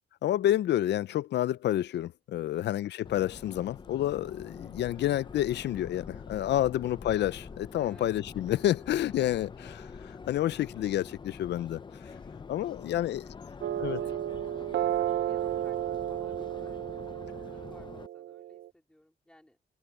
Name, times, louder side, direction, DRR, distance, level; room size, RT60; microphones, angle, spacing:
voice 1, 0.2-12.1 12.5-13.2 13.8-14.0, left 12 dB, 80° left, 0.4 m, -29 dB
voice 2, 2.3-2.8 7.7-8.1 12.1-12.3 12.7-19.6, left 1 dB, 5° left, 3.2 m, -59 dB
Subway metro underground, 3.0-18.1, left 5 dB, 25° left, 0.5 m, -46 dB
sound 1, 13.6-18.7, right 12 dB, 85° right, 0.4 m, -33 dB
wide cardioid pair, 160°, 18 cm